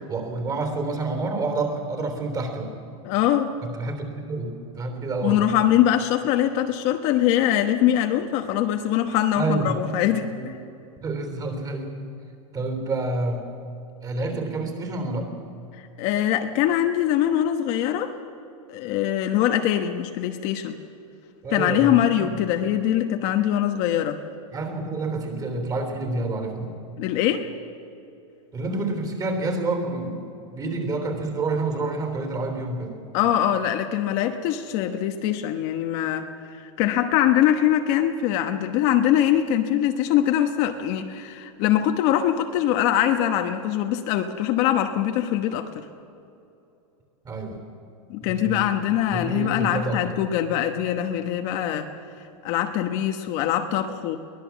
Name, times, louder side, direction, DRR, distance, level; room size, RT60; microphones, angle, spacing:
voice 1, 0.1-2.7 3.6-5.5 9.4-9.8 10.3-10.5 11.0-11.9 12.5-13.5 14.0-15.3 21.4-22.3 24.5-26.8 28.5-30.2 30.5-33.0 47.3-47.6 48.3-48.7 49.1-50.2, right 3 dB, 20° right, 5 dB, 3.5 m, -28 dB
voice 2, 3.0-3.5 5.2-10.6 15.8-18.1 18.7-20.8 21.5-24.2 27.0-27.5 33.1-45.7 48.1-51.9 52.4-54.2, left 11 dB, 40° left, 5 dB, 1.1 m, -23 dB
23.0 x 19.0 x 7.3 m, 2.7 s
supercardioid pair, 160°, 18 cm